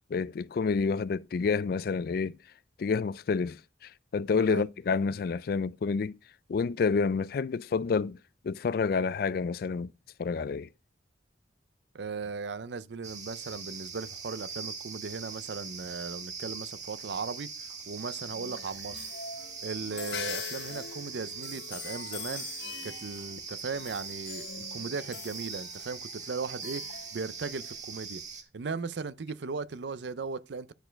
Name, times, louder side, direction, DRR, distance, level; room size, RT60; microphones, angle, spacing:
voice 1, 0.1-2.4 2.8-6.2 6.5-8.2 8.4-9.9 10.2-10.7, left 5 dB, 55° left, 0.3 m, -29 dB
voice 2, 11.9-17.5 17.9-19.1 19.6-22.5 22.8-28.2 28.5-30.7, right 4 dB, 70° right, 0.5 m, -37 dB
sound 1, 13.0-28.4, right 5 dB, 40° right, 1.4 m, -41 dB
sound 2, 18.3-27.8, left 7 dB, 75° left, 0.7 m, -43 dB
Chink clink, 19.9-24.2, left 9 dB, 90° right, 4.4 m, -53 dB
10.5 x 4.5 x 4.5 m
head